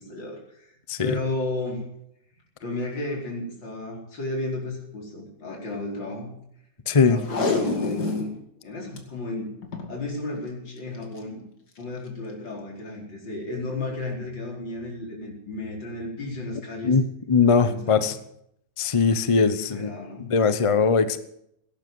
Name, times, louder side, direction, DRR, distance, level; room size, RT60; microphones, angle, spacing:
voice 1, 0.0-0.7 1.0-1.8 2.6-6.4 7.1-8.3 8.6-9.6 9.9-11.5 11.8-16.9 17.7-18.1 19.5-20.3, left 2 dB, 85° left, -1 dB, 5.1 m, -33 dB
voice 2, 0.9-1.2 6.9-7.2 16.8-18.2 18.8-21.2, left 5 dB, 30° left, 12 dB, 0.6 m, -21 dB
Packing tape duct tape, 7.2-8.3 8.7-8.8 9.0-9.1 9.6-9.9 10.9-11.2 11.8-11.9, left 3 dB, 60° left, 2.7 m, -27 dB
17.5 x 10.5 x 7.8 m, 0.74 s
omnidirectional pair, 2.0 m